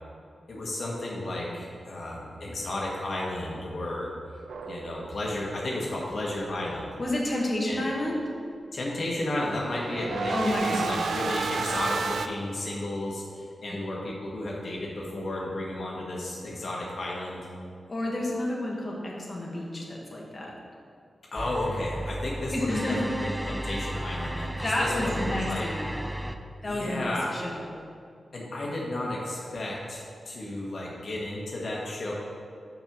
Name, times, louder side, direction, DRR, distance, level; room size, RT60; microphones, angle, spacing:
voice 1, 0.5-4.1 4.6-6.9 7.6-7.8 8.7-17.5 21.3-25.7 26.6-27.3 28.3-32.1, left 1 dB, 65° left, -4 dB, 1.2 m, -33 dB
sound 1, 4.5-5.4 9.1-12.3, right 5 dB, 85° right, 0.4 m, -32 dB
voice 2, 7.0-8.2 10.3-11.1 17.9-20.5 22.5-23.1 24.6-25.9 26.6-27.6, left 1 dB, 35° left, -3 dB, 1.4 m, -30 dB
sound 2, 21.4-26.4, right 1 dB, 5° right, 0.4 m, -34 dB
5.7 x 5.4 x 5.9 m, 2.4 s
cardioid pair, 70°, 0 cm